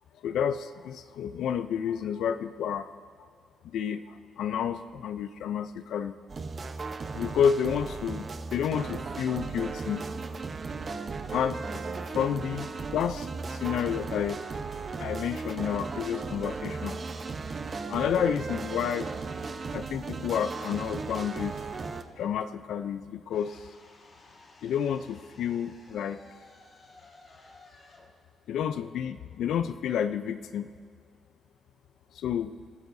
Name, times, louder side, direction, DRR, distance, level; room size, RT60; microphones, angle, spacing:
voice 1, 0.2-2.9 3.6-6.2 7.1-8.3 8.5-10.1 11.3-11.8 12.1-14.4 15.0-17.0 17.9-19.1 19.7-21.6 22.2-23.7 24.6-26.2 28.5-30.7 32.1-32.5, left 8 dB, 75° left, 10 dB, 0.5 m, -30 dB
sound 1, 6.3-22.0, right 4 dB, 40° right, 0.9 m, -36 dB
sound 2, 23.3-29.4, left 2 dB, 45° left, 2.8 m, -56 dB
27.5 x 13.5 x 2.7 m, 2.3 s
cardioid pair, 90°, 0 cm